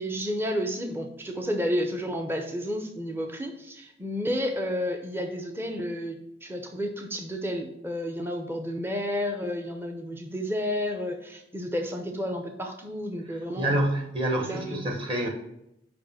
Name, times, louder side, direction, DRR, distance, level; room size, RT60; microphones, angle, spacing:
voice 1, 0.0-13.9 14.4-14.8, equal, 10° right, 3 dB, 0.7 m, -31 dB
voice 2, 13.6-15.3, right 1 dB, 25° right, 2 dB, 1.2 m, -27 dB
5.2 x 5.2 x 5.7 m, 0.82 s
head